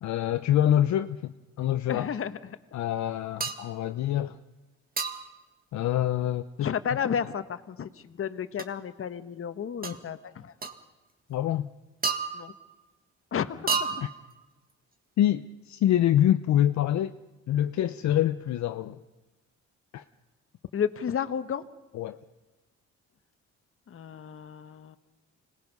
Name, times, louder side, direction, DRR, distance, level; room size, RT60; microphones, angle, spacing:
voice 1, 0.0-2.2 2.7-4.4 5.7-6.7 11.3-11.7 14.0-14.1 15.2-17.1 17.5-19.0 19.9-20.0 21.9-22.2, left 11 dB, 65° left, 9 dB, 0.7 m, -26 dB
voice 2, 1.9-2.6 6.6-10.5 12.3-12.5 13.3-14.0 20.7-21.6 23.9-25.0, left 8 dB, 45° left, 11 dB, 1.1 m, -32 dB
sound 1, 3.4-3.7 5.0-5.4 8.6-8.7 9.8-10.0 10.6-10.8 12.0-12.7 13.7-14.3, right 5 dB, 30° right, 1.7 m, -31 dB
25.5 x 19.0 x 5.4 m, 1.1 s
cardioid pair, 90°, 30 cm